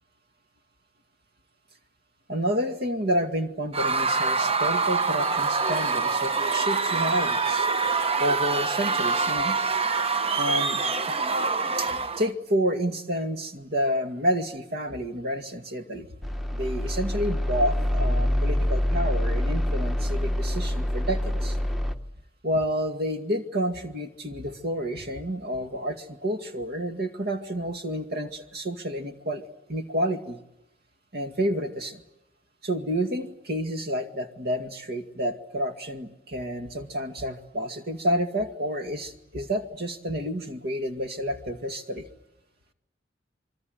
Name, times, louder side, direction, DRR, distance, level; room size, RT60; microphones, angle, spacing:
voice 1, 2.3-7.7 8.2-9.6 10.4-10.8 11.8-16.1 16.5-21.6 22.4-30.4 31.1-32.0 32.6-42.1, equal, 55° right, 6 dB, 2.2 m, -29 dB
Screaming / Cheering / Crowd, 3.7-12.3, right 4 dB, 30° right, 1.0 m, -25 dB
sound 1, 16.2-22.0, left 1 dB, ahead, 1.1 m, -26 dB
26.5 x 24.0 x 8.0 m, 0.88 s
head